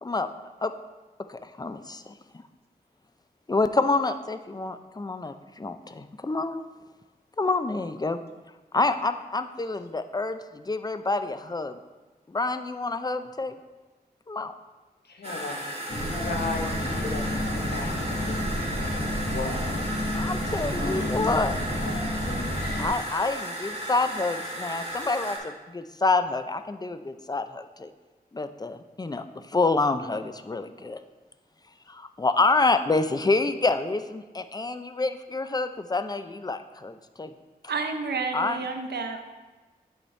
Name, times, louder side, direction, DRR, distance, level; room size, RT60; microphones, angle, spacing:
voice 1, 1.3-2.4 3.5-6.6 7.4-8.2 8.7-11.8 12.3-13.6 14.3-14.5 20.1-21.5 22.8-27.9 28.3-31.0 31.9-37.3 38.3-38.6, left 3 dB, 25° left, 10 dB, 0.5 m, -27 dB
voice 2, 15.1-15.6 16.2-16.7 17.0-17.9 18.2-18.3 18.7-19.9 20.7-21.3, left 3 dB, 80° left, 3 dB, 1.0 m, -36 dB
sound 1, 15.2-25.4, right 1 dB, 35° right, 2.0 m, -35 dB
sound 2, 15.9-22.9, left 1 dB, 60° left, 1.4 m, -30 dB
voice 3, 37.7-39.2, right 4 dB, 85° right, 6 dB, 0.6 m, -30 dB
8.4 x 5.3 x 3.2 m, 1.2 s
cardioid pair, 45°, 17 cm